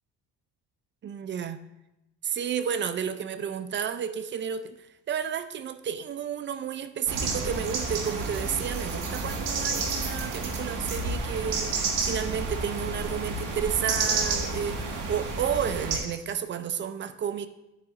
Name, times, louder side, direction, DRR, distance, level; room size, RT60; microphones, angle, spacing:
voice 1, 1.0-1.7 2.2-17.5, right 8 dB, 35° right, 0.4 m, -32 dB
sound 1, 7.1-16.0, right 3 dB, 80° right, 1.8 m, -30 dB
10.5 x 8.9 x 2.5 m
cardioid pair, 145°, 32 cm